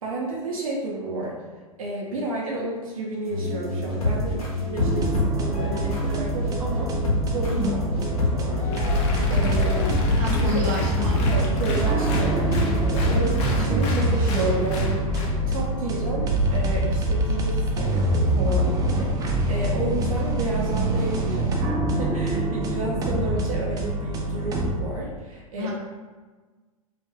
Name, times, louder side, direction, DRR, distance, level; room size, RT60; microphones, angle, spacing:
voice 1, 0.0-1.4 1.8-6.9 7.3-8.6 8.9-9.9 10.5-10.7 11.2-21.6 22.0-25.7, right 2 dB, 70° right, -4 dB, 0.6 m, -31 dB
sound 1, 3.3-13.7, left 1 dB, 80° left, 0.8 m, -26 dB
sound 2, 4.8-24.7, right 1 dB, 20° right, 0.4 m, -25 dB
voice 2, 7.5-7.8 10.2-11.2 25.6-25.7, left 2 dB, 35° right, -3 dB, 0.7 m, -28 dB
Applause, 8.7-15.4, equal, 35° left, 0.5 m, -30 dB
2.3 x 2.2 x 2.9 m, 1.3 s
figure-of-eight pair, 95°, 18 cm